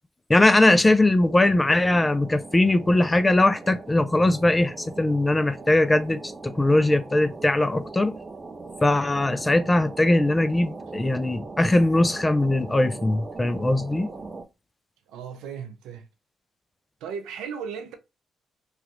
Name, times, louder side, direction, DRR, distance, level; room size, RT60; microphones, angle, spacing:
voice 1, 0.3-8.2 8.8-14.1, left 2 dB, 20° left, 0.4 m, -20 dB
sound 1, 1.2-14.4, right 3 dB, 35° right, 0.5 m, -40 dB
voice 2, 15.1-16.0 17.0-17.9, right 7 dB, 85° right, 0.5 m, -36 dB
3.0 x 2.4 x 2.9 m
supercardioid pair, 55°, 0 cm